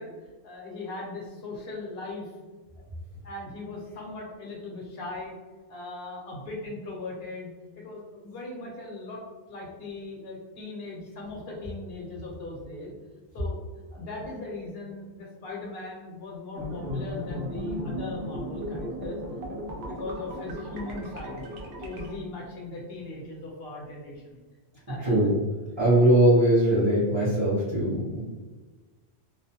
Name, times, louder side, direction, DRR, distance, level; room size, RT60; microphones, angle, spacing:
voice 1, 0.0-2.3 2.8-2.9 3.2-5.3 5.7-7.5 7.8-9.2 9.5-12.9 13.3-13.6 13.9-19.2 19.8-21.5 21.8-24.4 24.7-25.1, left 2 dB, 65° left, -2 dB, 1.0 m, -39 dB
sound 1, 16.5-22.1, equal, 75° right, 0.8 m, -35 dB
voice 2, 25.0-25.4 25.8-28.2, right 1 dB, 30° right, -10 dB, 0.6 m, -21 dB
2.5 x 2.1 x 2.7 m, 1.3 s
omnidirectional pair, 1.1 m